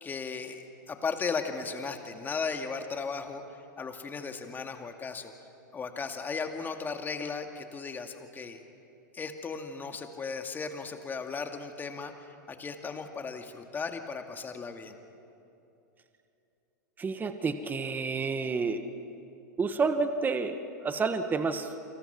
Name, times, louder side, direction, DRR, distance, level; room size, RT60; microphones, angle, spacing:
voice 1, 0.0-5.3 5.7-8.6 9.1-15.0, left 5 dB, 20° left, 5 dB, 2.3 m, -36 dB
voice 2, 17.0-18.8 19.6-21.9, right 4 dB, 20° right, 9 dB, 1.4 m, -30 dB
29.0 x 26.0 x 6.0 m, 2.8 s
hypercardioid pair, 100°, 10 cm